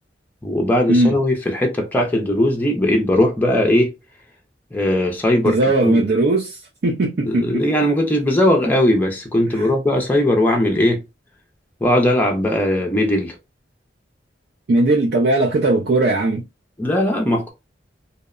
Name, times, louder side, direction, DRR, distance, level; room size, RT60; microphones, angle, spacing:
voice 1, 0.4-3.9 4.7-5.6 5.8-6.1 7.3-11.0 11.8-13.4 16.8-17.5, left 1 dB, 10° left, 0.4 m, -18 dB
voice 2, 5.4-7.9 9.5-9.7 14.7-16.4, right 2 dB, 60° right, 0.4 m, -18 dB
2.7 x 2.0 x 2.3 m
head